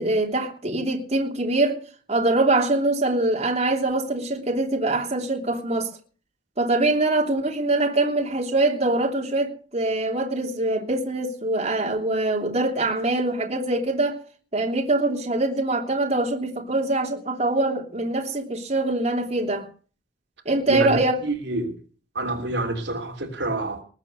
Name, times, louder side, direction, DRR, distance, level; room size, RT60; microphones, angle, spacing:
voice 1, 0.0-1.8 2.1-5.9 6.6-14.2 14.5-19.7 20.4-21.2, right 2 dB, 40° right, 3.1 m, -23 dB
voice 2, 20.7-21.8 22.1-23.8, right 2 dB, 70° right, 3.1 m, -27 dB
20.5 x 8.2 x 6.7 m
head